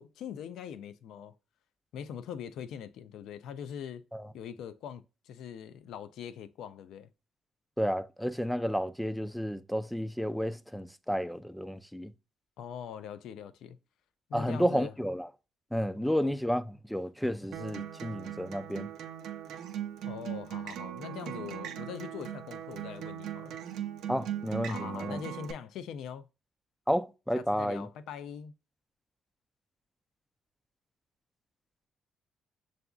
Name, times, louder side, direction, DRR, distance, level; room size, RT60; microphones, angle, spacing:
voice 1, 0.0-1.3 1.9-4.0 4.3-7.1 12.6-13.8 14.3-14.9 16.0-16.3 20.1-23.6 24.7-26.3 27.4-28.5, left 8 dB, 80° left, 0.4 m, -42 dB
voice 2, 7.8-12.1 14.3-15.3 15.7-18.9 24.1-25.2 26.9-27.9, equal, ahead, 0.4 m, -31 dB
Acoustic guitar, 17.5-25.5, right 10 dB, 85° right, 0.5 m, -39 dB
6.8 x 2.5 x 2.3 m
cardioid pair, 90°, 0 cm